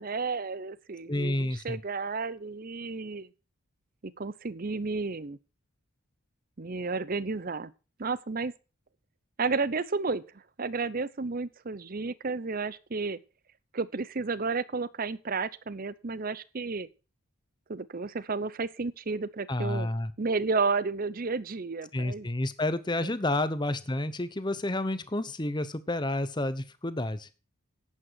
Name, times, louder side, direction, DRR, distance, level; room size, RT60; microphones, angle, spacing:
voice 1, 0.0-3.3 4.0-5.4 6.6-7.7 8.0-8.5 9.4-10.2 10.6-13.2 13.7-16.9 17.7-19.9 20.2-22.3 23.0-23.1, right 4 dB, 40° right, 0.6 m, -32 dB
voice 2, 1.1-1.8 19.5-20.1 21.9-27.3, left 1 dB, 20° left, 0.8 m, -30 dB
11.5 x 8.8 x 4.6 m
head